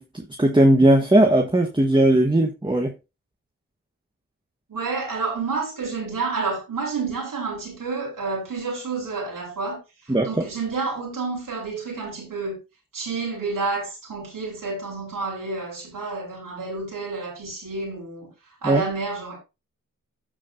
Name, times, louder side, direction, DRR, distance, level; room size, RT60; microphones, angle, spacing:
voice 1, 0.0-2.9 10.1-10.3 18.6-18.8, right 1 dB, 15° right, 1.4 m, -18 dB
voice 2, 4.7-9.8 10.2-12.6 12.9-18.3 18.6-19.4, right 4 dB, 80° right, 4.0 m, -29 dB
14.5 x 4.9 x 2.7 m
cardioid pair, 45°, 33 cm